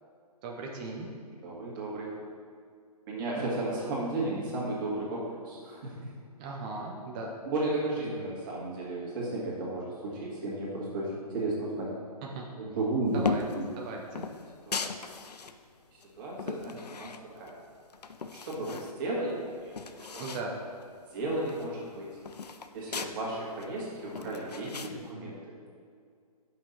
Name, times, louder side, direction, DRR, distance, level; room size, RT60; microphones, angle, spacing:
voice 1, 0.4-1.1 6.4-7.3 12.3-12.4 13.1-13.4 13.8-14.3 20.2-20.6, right 3 dB, 15° right, -1 dB, 0.3 m, -37 dB
voice 2, 1.4-2.1 3.1-6.1 7.4-11.9 12.6-13.2 13.6-13.7 14.7-15.1 15.9-17.1 17.4-17.6 18.3-20.2 21.1-22.2 22.7-25.4, right 2 dB, 30° right, -5 dB, 2.0 m, -34 dB
sound 1, 13.2-13.6 14.1-15.6 16.0-17.5 17.9-18.9 19.3-19.4 19.6-20.5 20.8-20.9 21.2-23.1 23.6-24.9, left 5 dB, 80° left, 0.5 m, -37 dB
7.8 x 5.7 x 4.3 m, 2.2 s
figure-of-eight pair, 135°, 20 cm